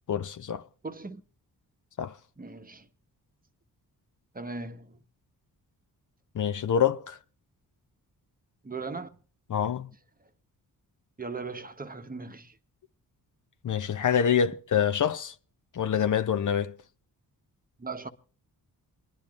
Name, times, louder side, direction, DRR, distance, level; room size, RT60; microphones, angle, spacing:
voice 1, 0.1-0.6 2.0-2.1 6.3-7.2 9.5-9.9 13.6-15.3 15.7-16.7, left 8 dB, 50° left, 0.7 m, -26 dB
voice 2, 0.8-1.2 2.4-2.9 4.3-5.0 8.6-9.1 11.2-12.6 17.8-18.1, right 4 dB, 25° right, 1.0 m, -38 dB
27.5 x 10.0 x 2.4 m
cardioid pair, 70°, 38 cm